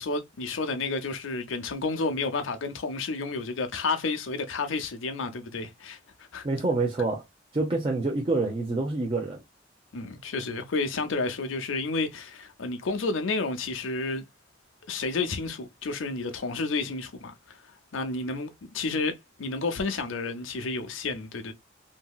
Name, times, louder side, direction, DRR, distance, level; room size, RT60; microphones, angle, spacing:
voice 1, 0.0-6.0 6.3-6.4 9.9-14.2 14.9-17.6 17.9-21.5, left 3 dB, 85° left, 0.6 m, -31 dB
voice 2, 6.4-7.2 7.5-9.4, right 3 dB, 30° right, 0.5 m, -27 dB
2.8 x 2.7 x 2.2 m
head